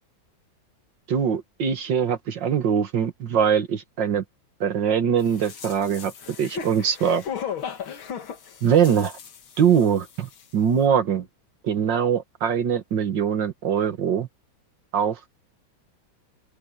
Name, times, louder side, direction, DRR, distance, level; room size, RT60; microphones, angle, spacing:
voice 1, 1.1-4.2 4.6-6.1 6.4-7.2 8.6-9.2 9.6-11.3 11.6-14.3 14.9-15.3, right 8 dB, 65° right, 2.2 m, -22 dB
sound 1, 5.3-10.1 10.3-10.4, left 8 dB, 85° left, 2.5 m, -36 dB
open air
omnidirectional pair, 2.2 m